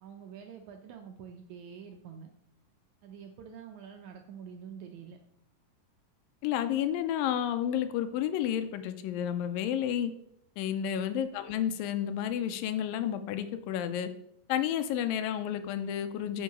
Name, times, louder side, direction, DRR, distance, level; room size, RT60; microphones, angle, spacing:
voice 1, 0.0-2.3 3.0-5.2 10.8-11.1, right 7 dB, 80° right, 4 dB, 1.7 m, -46 dB
voice 2, 6.4-10.1 10.6-14.1 14.5-16.4, left 10 dB, 85° left, 10 dB, 2.4 m, -31 dB
9.3 x 5.6 x 5.1 m, 0.76 s
omnidirectional pair, 4.0 m